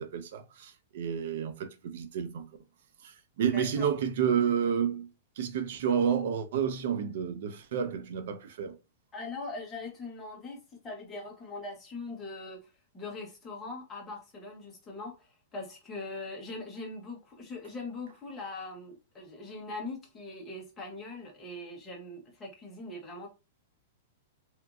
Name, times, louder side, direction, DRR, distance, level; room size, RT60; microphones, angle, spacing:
voice 1, 0.0-2.5 3.0-5.1 5.4-8.8, right 8 dB, 55° right, 0.5 m, -30 dB
voice 2, 3.5-3.9 9.1-23.3, left 2 dB, 10° left, 0.7 m, -41 dB
2.9 x 2.4 x 2.3 m
supercardioid pair, 170°, 0 cm